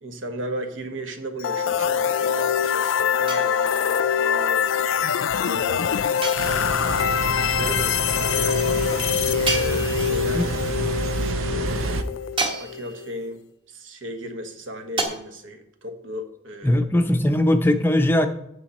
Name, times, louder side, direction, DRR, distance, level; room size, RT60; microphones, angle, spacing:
voice 1, 0.0-6.0 6.6-8.8 9.5-12.1 12.6-16.8, equal, 75° right, 6 dB, 1.2 m, -36 dB
sound 1, 1.4-13.2, left 7 dB, 75° left, 0.4 m, -24 dB
sound 2, 3.3-4.0 6.2-7.0 9.5-10.4 12.4-13.2 15.0-15.1, right 3 dB, 25° right, 1.1 m, -30 dB
sound 3, 6.4-12.0, right 3 dB, 90° right, 0.7 m, -28 dB
voice 2, 16.6-18.3, left 1 dB, 10° left, 6 dB, 0.5 m, -19 dB
8.8 x 7.8 x 4.2 m, 0.80 s
head